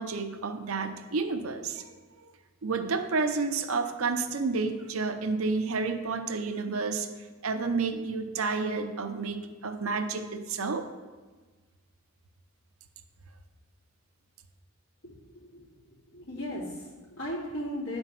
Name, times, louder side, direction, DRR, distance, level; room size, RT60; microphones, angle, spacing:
voice 1, 0.0-2.0 2.6-7.1 7.4-10.9, right 4 dB, 90° right, 7 dB, 0.7 m, -30 dB
voice 2, 15.0-15.7 16.1-18.0, equal, 75° left, -9 dB, 2.6 m, -37 dB
9.8 x 4.4 x 5.8 m, 1.3 s
head